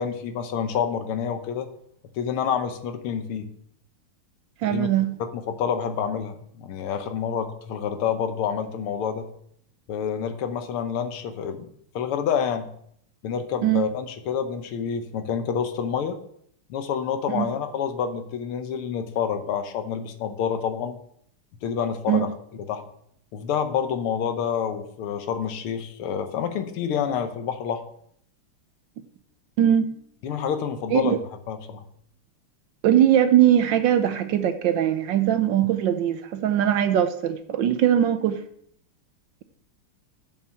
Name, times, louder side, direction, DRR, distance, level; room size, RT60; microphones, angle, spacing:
voice 1, 0.0-1.7 2.2-3.5 4.7-4.9 5.2-9.3 9.9-11.7 11.9-12.7 13.2-16.2 16.7-21.0 21.6-22.3 22.7-22.8 23.3-27.8 30.2-31.2 31.5-31.8, left 7 dB, 80° left, 1.8 m, -28 dB
voice 2, 4.6-5.1 13.6-13.8 17.3-17.5 22.1-22.2 29.6-29.9 30.9-31.2 32.8-38.4, right 10 dB, 70° right, 1.2 m, -21 dB
7.3 x 6.6 x 5.9 m
omnidirectional pair, 2.4 m